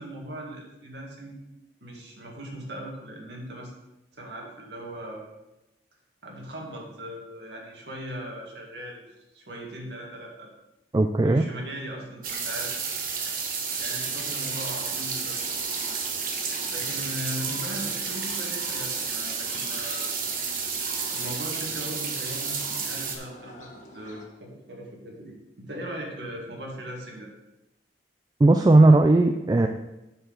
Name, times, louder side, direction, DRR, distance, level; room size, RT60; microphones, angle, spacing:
voice 1, 0.0-1.4 1.8-3.7 4.1-5.2 6.2-9.0 9.3-10.5 11.2-12.9 13.8-15.6 16.7-20.0 21.1-25.4 25.7-27.3, right 1 dB, 75° right, -1 dB, 2.0 m, -39 dB
voice 2, 10.9-11.5 28.4-29.7, right 2 dB, 20° right, 6 dB, 0.3 m, -17 dB
sound 1, 12.2-23.2, right 5 dB, 50° right, 1.1 m, -31 dB
sound 2, 14.0-24.3, left 1 dB, 40° left, 1.3 m, -46 dB
7.8 x 4.6 x 6.4 m, 0.97 s
head